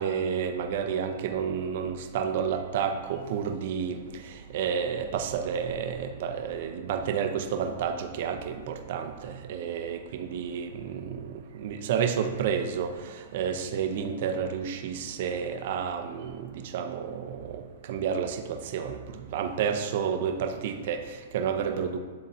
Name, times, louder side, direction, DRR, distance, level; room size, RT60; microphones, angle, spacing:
voice 1, 0.0-22.0, right 7 dB, 60° right, 6 dB, 0.7 m, -30 dB
9.6 x 3.8 x 2.8 m, 1.5 s
hypercardioid pair, 130°, 0 cm